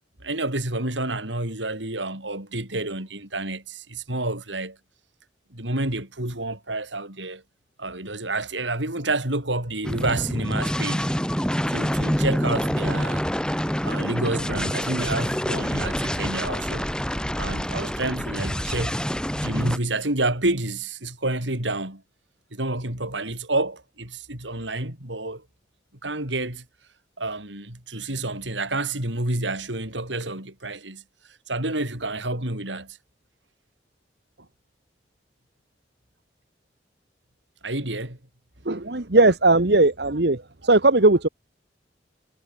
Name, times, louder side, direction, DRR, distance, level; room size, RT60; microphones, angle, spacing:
voice 1, 0.2-4.8 5.5-7.4 7.8-11.1 11.7-13.3 13.8-16.9 17.3-19.0 19.4-22.0 22.5-25.4 26.0-26.6 27.2-31.0 31.5-33.0 37.6-38.2 38.9-39.1, right 2 dB, 90° right, 7.4 m, -29 dB
sound 1, 9.8-19.8, equal, 5° left, 5.4 m, -26 dB
voice 2, 38.6-41.3, right 2 dB, 60° right, 1.5 m, -18 dB
head